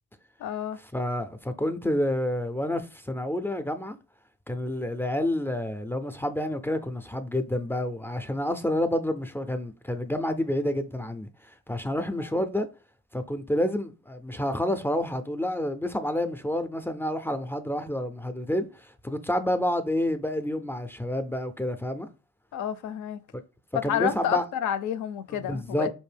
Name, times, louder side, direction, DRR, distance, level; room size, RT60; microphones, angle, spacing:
voice 1, 0.4-0.8 12.2-12.5 22.5-23.2 23.9-25.9, left 9 dB, 75° left, 0.5 m, -30 dB
voice 2, 0.9-4.0 4.5-12.7 13.1-22.1 23.3-23.4 23.8-24.4 25.4-25.9, left 1 dB, 10° left, 0.3 m, -29 dB
4.3 x 2.6 x 3.3 m
cardioid pair, 90°, 30 cm